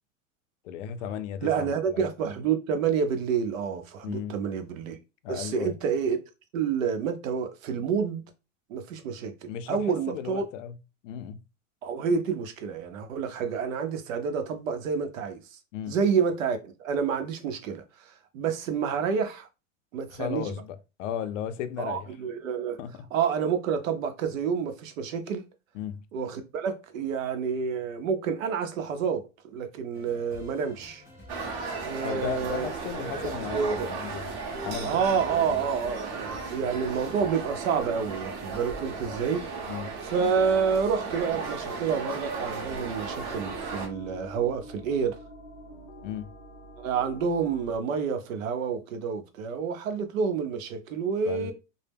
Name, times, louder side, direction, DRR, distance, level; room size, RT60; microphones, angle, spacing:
voice 1, 0.6-2.0 4.0-4.4 5.2-5.7 9.5-10.8 11.0-11.4 15.7-16.0 20.1-22.1 22.8-23.1 25.7-26.0 32.0-34.3 34.6-35.0 35.4-35.6 39.7-40.0 46.0-46.3 51.3-51.5, left 9 dB, 70° left, 0.5 m, -35 dB
voice 2, 1.4-5.0 5.3-6.2 6.5-8.2 8.7-10.4 11.8-15.6 15.9-19.5 19.9-20.5 21.8-22.8 23.1-25.4 26.1-29.3 29.5-31.0 31.8-32.7 33.5-33.9 34.8-39.5 40.0-45.2 46.8-51.5, right 6 dB, 80° right, 0.7 m, -28 dB
sound 1, 29.9-37.3, equal, 10° right, 0.3 m, -49 dB
sound 2, 31.3-43.9, right 4 dB, 35° right, 0.7 m, -35 dB
sound 3, 42.6-47.8, equal, 30° left, 0.7 m, -46 dB
2.1 x 2.0 x 3.3 m
supercardioid pair, 145°, 39 cm